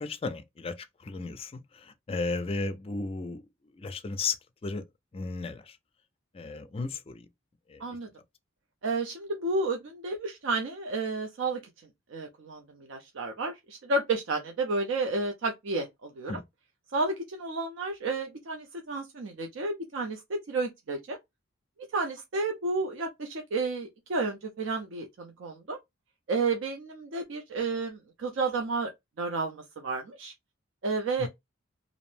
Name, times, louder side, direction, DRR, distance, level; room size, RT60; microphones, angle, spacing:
voice 1, 0.0-3.4 3.8-4.8 5.1-5.8 6.3-7.3 7.7-7.8 16.3-16.4 31.2-31.3, left 3 dB, 30° left, 0.3 m, -34 dB
voice 2, 8.8-11.6 12.1-16.4 16.9-21.2 21.9-25.8 26.3-28.9 29.2-30.3 30.8-31.3, right 3 dB, 65° right, 0.5 m, -31 dB
2.5 x 2.0 x 3.1 m
head